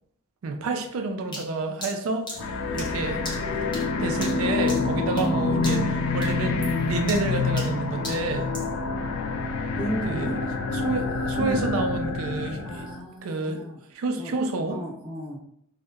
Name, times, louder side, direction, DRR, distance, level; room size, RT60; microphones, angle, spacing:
voice 1, 0.4-3.2 3.5-3.6 4.0-8.5 10.1-12.9 13.2-13.7 13.9-14.8, right 3 dB, 90° right, 5 dB, 0.4 m, -29 dB
sound 1, 1.3-5.4 5.6-6.0 6.2-8.8, left 1 dB, 20° left, 0.6 m, -39 dB
sound 2, 2.4-13.0, left 3 dB, 80° left, 0.3 m, -27 dB
voice 2, 9.7-10.4 11.4-11.7 12.6-13.8 14.2-14.3 14.7-15.4, right 1 dB, 25° right, -7 dB, 0.9 m, -34 dB
2.7 x 2.0 x 2.3 m, 0.71 s
head